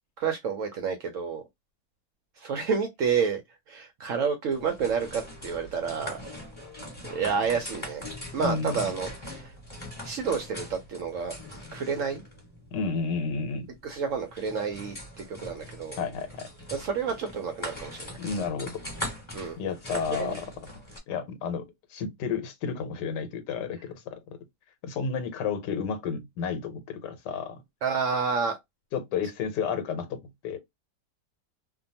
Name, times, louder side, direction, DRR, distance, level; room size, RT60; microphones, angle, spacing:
voice 1, 0.2-1.4 2.4-3.4 3.7-6.2 7.1-8.0 8.3-9.5 10.0-11.4 11.7-12.2 13.8-16.0 16.7-18.2 19.3-19.6 20.2-20.3 27.8-28.6, right 6 dB, 70° right, 0.7 m, -29 dB
sound 1, 4.5-21.0, left 1 dB, 20° left, 1.3 m, -41 dB
voice 2, 8.4-8.8 12.7-13.7 16.0-16.5 18.1-18.9 19.6-20.5 21.1-24.4 24.8-27.6 28.9-30.6, left 5 dB, 85° left, 1.3 m, -32 dB
2.7 x 2.2 x 2.6 m
omnidirectional pair, 1.8 m